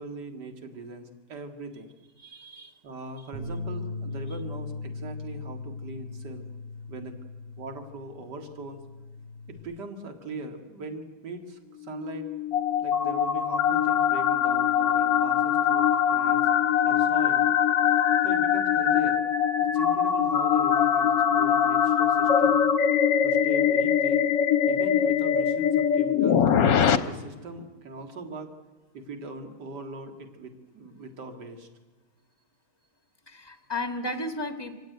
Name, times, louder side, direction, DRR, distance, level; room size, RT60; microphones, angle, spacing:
voice 1, 0.0-1.9 2.8-6.5 6.9-7.2 7.6-8.8 9.5-12.3 12.8-16.5 16.8-17.5 18.2-19.4 19.6-22.6 23.2-24.3 24.7-26.5 26.9-28.6 28.9-31.7, right 3 dB, 50° right, 5 dB, 2.5 m, -40 dB
voice 2, 2.2-2.8 33.3-34.8, left 1 dB, 15° left, 6 dB, 1.3 m, -34 dB
Bass guitar, 3.3-9.6, left 3 dB, 80° right, 4.4 m, -38 dB
sound 1, 11.9-27.0, left 8 dB, 65° left, 1.5 m, -22 dB
26.0 x 16.0 x 9.3 m, 1.3 s
omnidirectional pair, 2.4 m